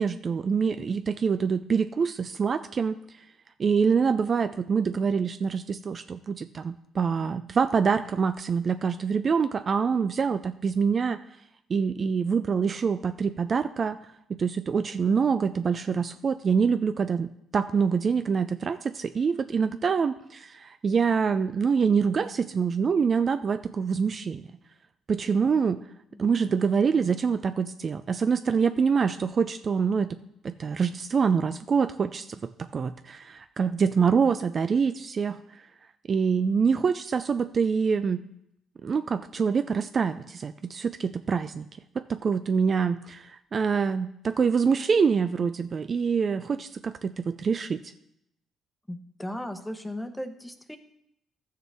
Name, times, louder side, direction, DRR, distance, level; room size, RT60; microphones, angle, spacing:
voice 1, 0.0-3.0 3.6-11.2 11.7-14.0 14.4-24.5 25.1-25.8 26.2-30.2 30.4-32.3 32.6-35.4 36.1-38.2 38.8-41.7 42.0-47.8, right 6 dB, 40° right, 10 dB, 0.3 m, -25 dB
voice 2, 48.9-50.8, left 1 dB, 5° left, 7 dB, 0.9 m, -36 dB
13.5 x 6.5 x 3.4 m, 0.79 s
cardioid pair, 90°, 0 cm